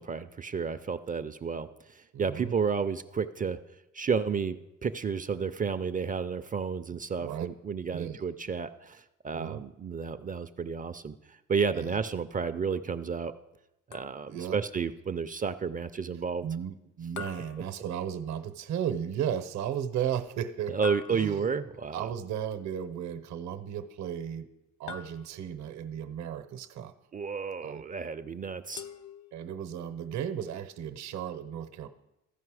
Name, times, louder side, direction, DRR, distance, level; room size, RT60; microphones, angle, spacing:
voice 1, 0.0-3.6 3.9-13.3 13.9-16.5 20.7-22.1 27.1-28.9, right 6 dB, 30° right, 11 dB, 0.4 m, -32 dB
voice 2, 2.1-2.5 7.2-7.5 7.9-8.2 9.3-9.6 11.7-12.0 14.3-14.6 16.4-20.8 21.1-21.5 21.9-24.5 24.8-26.9 27.6-27.8 29.3-31.9, right 9 dB, 65° right, 10 dB, 0.7 m, -35 dB
sound 1, 13.9-14.5 17.2-18.4 20.8-21.7 24.9-25.7 28.8-29.8, left 6 dB, 65° left, 0.5 m, -45 dB
14.5 x 5.4 x 4.8 m, 0.94 s
cardioid pair, 90°, 30 cm